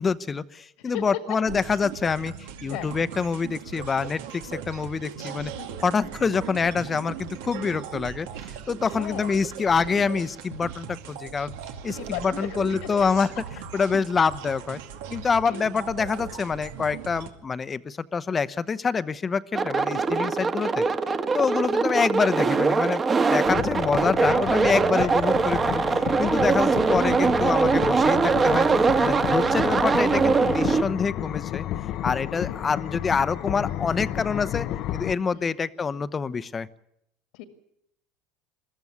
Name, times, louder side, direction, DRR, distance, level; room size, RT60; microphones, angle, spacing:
voice 1, 0.0-5.5 5.8-11.5 11.8-13.3 13.7-14.8 15.1-20.8 21.3-28.7 29.0-31.7 32.0-34.7 34.9-36.7, left 5 dB, 25° left, 16 dB, 0.9 m, -26 dB
sound 1, 1.4-17.3, right 8 dB, 80° right, 2.3 m, -39 dB
voice 2, 5.3-5.8 8.9-9.4 12.0-12.7 15.5-15.6 19.8-20.1 25.0-25.1 29.3-29.4 32.5-32.6 35.3-35.5 37.3-37.4, left 11 dB, 75° left, 8 dB, 2.0 m, -37 dB
sound 2, 19.5-30.8, right 4 dB, 25° right, 1.5 m, -22 dB
sound 3, 23.4-35.1, left 12 dB, 55° left, 0.7 m, -32 dB
22.0 x 14.0 x 9.6 m, 0.79 s
supercardioid pair, 115°, 0 cm